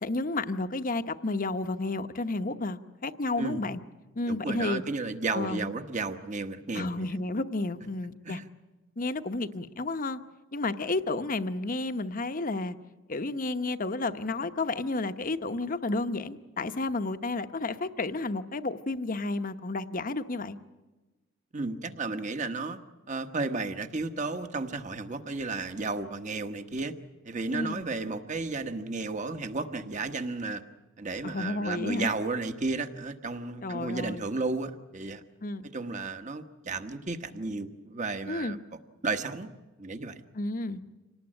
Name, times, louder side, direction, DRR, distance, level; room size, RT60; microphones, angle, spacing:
voice 1, 0.0-3.8 4.1-4.8 5.3-5.7 6.7-8.4 9.0-10.2 10.5-12.8 13.1-20.6 27.5-27.8 31.2-32.1 33.6-34.3 35.4-35.7 38.3-38.6 40.3-40.8, left 2 dB, 40° left, 10 dB, 0.9 m, -31 dB
voice 2, 4.3-7.1 8.2-8.4 21.5-22.8 23.1-26.9 27.2-30.6 31.0-35.2 35.7-38.6 39.0-40.2, right 3 dB, 35° right, 8 dB, 1.2 m, -33 dB
26.0 x 18.5 x 8.8 m, 1.2 s
head